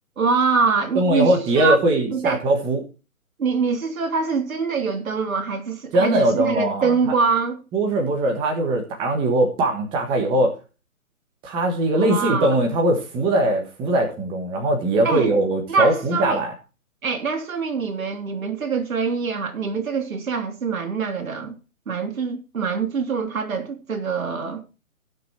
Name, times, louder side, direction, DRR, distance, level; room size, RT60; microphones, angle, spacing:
voice 1, 0.2-1.8 2.1-2.4 3.4-7.6 11.9-12.5 15.0-15.3 15.7-16.4 17.0-21.5 21.9-24.6, right 5 dB, 70° right, 3.2 m, -24 dB
voice 2, 0.9-2.8 5.9-7.1 7.7-10.6 11.4-16.5, right 1 dB, 10° right, 1.4 m, -21 dB
16.0 x 6.3 x 4.4 m
hypercardioid pair, 150°, 43 cm